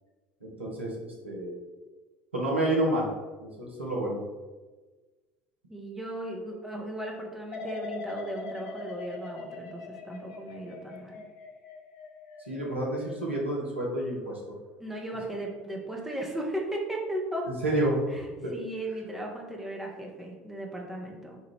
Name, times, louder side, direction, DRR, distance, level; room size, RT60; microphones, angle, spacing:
voice 1, 0.4-1.6 2.3-3.1 3.4-4.2 12.5-14.4 17.6-18.0 18.4-18.5, right 1 dB, 85° right, -4 dB, 0.9 m, -29 dB
voice 2, 5.7-11.2 14.8-17.5 18.1-21.4, right 1 dB, 5° right, -1 dB, 0.8 m, -36 dB
sound 1, 7.5-14.4 14.9-15.3, left 3 dB, 60° left, 0.4 m, -42 dB
4.4 x 2.4 x 3.3 m, 1.3 s
figure-of-eight pair, 65°, 6 cm